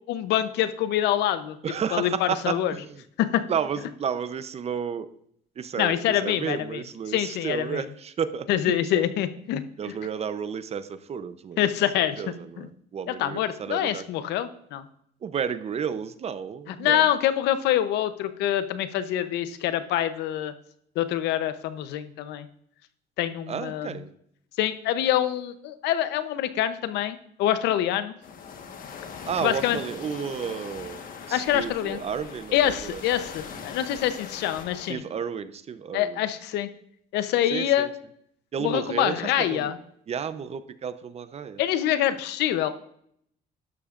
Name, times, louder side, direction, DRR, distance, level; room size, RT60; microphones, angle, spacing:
voice 1, 0.1-1.6 1.9-2.8 3.2-3.4 5.8-7.8 8.5-9.9 11.6-12.2 12.6-12.7 13.1-14.8 16.7-20.5 21.0-22.5 23.2-23.9 24.6-28.1 29.4-29.8 31.3-32.0 32.5-35.0 35.9-36.7 37.1-37.9 38.6-39.8 41.6-42.7, left 11 dB, 85° left, 12 dB, 0.8 m, -25 dB
voice 2, 1.6-3.0 3.5-5.1 5.6-6.0 6.2-9.1 9.8-11.6 12.2-14.0 15.2-17.1 23.5-24.1 29.3-31.0 31.3-33.0 34.9-36.2 37.5-37.9 38.5-39.7 40.1-41.6, right 7 dB, 40° right, 12 dB, 0.7 m, -32 dB
sound 1, 28.2-34.9, left 5 dB, 55° left, 1.4 m, -41 dB
12.0 x 11.5 x 2.5 m, 0.70 s
cardioid pair, 110°, 17 cm